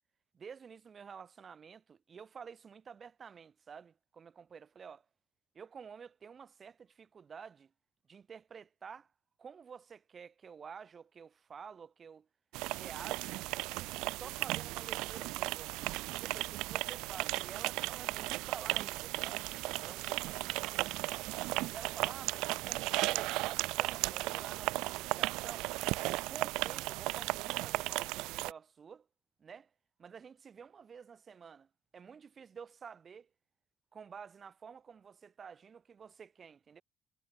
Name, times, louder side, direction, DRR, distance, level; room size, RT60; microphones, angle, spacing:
voice 1, 0.3-5.0 5.5-7.7 8.1-9.1 9.4-12.3 12.7-13.4 14.0-19.4 19.8-20.8 21.7-25.7 26.2-29.1 29.4-29.7 30.0-31.7 31.9-33.3 33.9-36.8, right 6 dB, 45° right, 1.6 m, -50 dB
sound 1, 12.5-28.5, right 21 dB, 80° right, 0.6 m, -35 dB
supercardioid pair, 70°, 0 cm